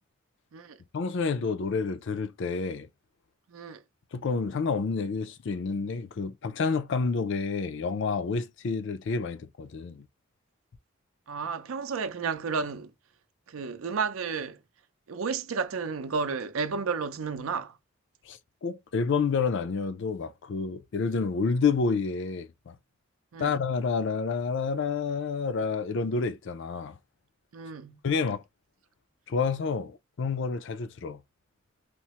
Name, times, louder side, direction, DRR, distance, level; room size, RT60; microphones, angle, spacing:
voice 1, 0.9-2.9 4.1-10.1 18.3-22.8 23.4-27.0 28.0-28.4 29.3-31.2, left 5 dB, 60° left, 0.4 m, -29 dB
voice 2, 3.5-3.8 11.3-12.9 13.5-14.6 15.1-17.8 23.3-23.5 27.5-28.0, right 5 dB, 85° right, 0.5 m, -32 dB
3.2 x 2.0 x 2.8 m
head